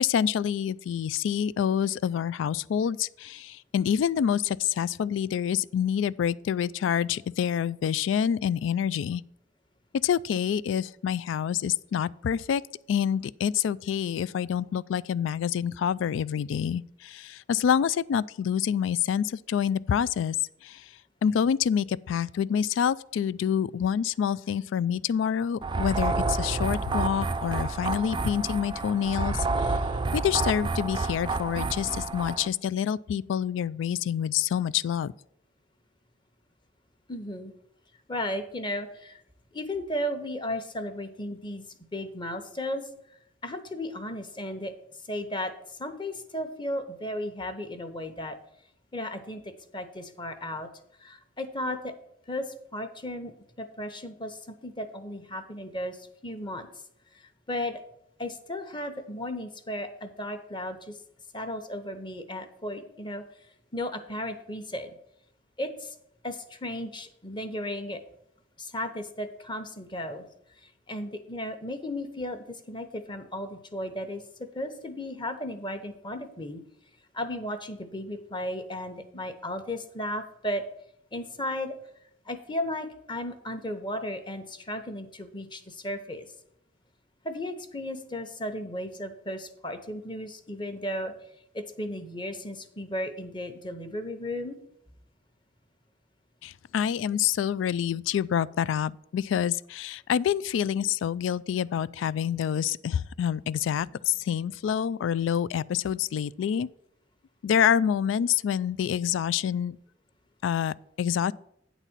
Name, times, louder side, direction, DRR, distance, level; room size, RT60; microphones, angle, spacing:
voice 1, 0.0-9.2 10.0-12.6 12.9-20.4 20.6-20.8 21.2-29.8 30.1-35.1 96.4-106.7 107.4-109.8 110.4-111.3, left 8 dB, 85° left, 0.3 m, -27 dB
sound 1, 25.6-32.5, right 3 dB, 25° right, 0.4 m, -29 dB
voice 2, 37.1-37.5 38.1-39.2 39.5-41.6 41.9-42.9 43.4-44.7 45.1-48.4 48.9-50.7 51.0-51.9 52.3-53.3 53.6-56.7 57.1-57.8 58.2-61.0 61.3-63.2 63.7-65.0 65.6-65.9 66.2-68.0 68.6-70.2 70.6-74.2 74.5-76.6 77.1-80.6 81.1-81.8 82.3-86.3 87.2-91.1 91.5-94.6, left 1 dB, 25° left, 0.9 m, -35 dB
9.1 x 4.1 x 7.3 m
head